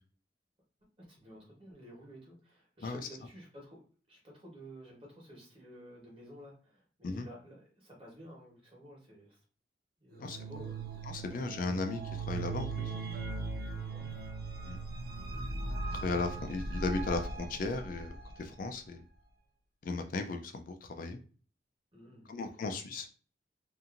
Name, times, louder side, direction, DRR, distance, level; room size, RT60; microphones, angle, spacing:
voice 1, 1.0-3.8 4.1-9.4 10.0-10.9 11.3-11.4 13.9-14.2 21.9-22.3, equal, 30° right, -3 dB, 1.2 m, -52 dB
sound 1, 10.2-18.5, right 3 dB, 60° right, 0.4 m, -39 dB
voice 2, 11.1-12.0 12.3-12.9 14.7-14.8 15.9-19.0 19.8-21.2 22.3-23.1, left 3 dB, 50° left, 6 dB, 0.3 m, -36 dB
2.8 x 2.5 x 2.4 m, 0.39 s
head